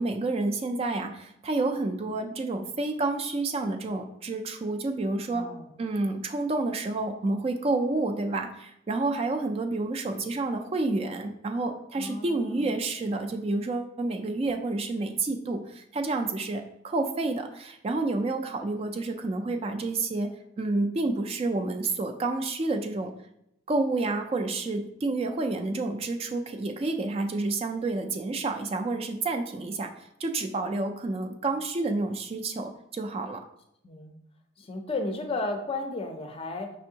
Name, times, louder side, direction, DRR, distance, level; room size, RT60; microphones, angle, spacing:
voice 1, 0.0-5.5 5.8-23.1 23.7-33.4, right 2 dB, 30° right, 6 dB, 0.3 m, -29 dB
voice 2, 5.3-5.7 12.0-12.7 33.8-34.2 34.6-36.8, left 2 dB, 30° left, 5 dB, 0.5 m, -34 dB
5.2 x 3.4 x 2.8 m, 0.78 s
head